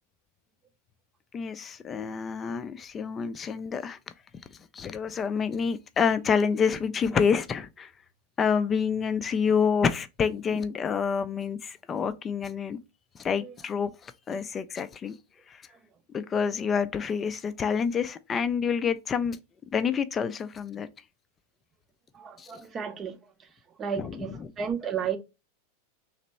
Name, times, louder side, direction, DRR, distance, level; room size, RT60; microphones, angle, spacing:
voice 1, 1.3-4.0 4.7-7.9 8.4-12.8 13.2-15.1 15.5-15.6 16.1-19.4 19.7-20.9 22.4-22.5 24.0-24.5, left 6 dB, 20° left, 0.4 m, -28 dB
voice 2, 22.1-23.5 23.8-25.2, right 7 dB, 25° right, 0.6 m, -33 dB
3.2 x 2.9 x 4.2 m
figure-of-eight pair, 90°, 0 cm